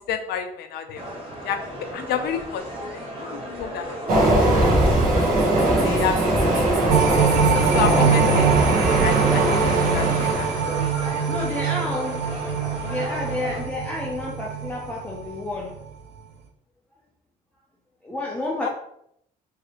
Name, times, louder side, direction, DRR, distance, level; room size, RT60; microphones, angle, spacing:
voice 1, 0.1-1.1 1.4-1.6 1.9-2.6 3.1-3.9 5.8-6.5 7.6-8.5 8.9-9.4 9.9-10.5 18.6-18.7, left 7 dB, 75° left, 8 dB, 0.5 m, -29 dB
sound 1, 0.9-13.6, equal, 35° right, 1.4 m, -35 dB
Train, 4.1-10.8, right 1 dB, 55° right, 1.0 m, -20 dB
sound 2, 6.9-15.3 15.7-15.8, right 7 dB, 85° right, 0.4 m, -24 dB
voice 2, 11.3-12.2 12.8-15.8 18.0-18.7, left 2 dB, 10° left, -3 dB, 0.5 m, -30 dB
3.2 x 2.8 x 2.8 m, 0.72 s
cardioid pair, 110°, 17 cm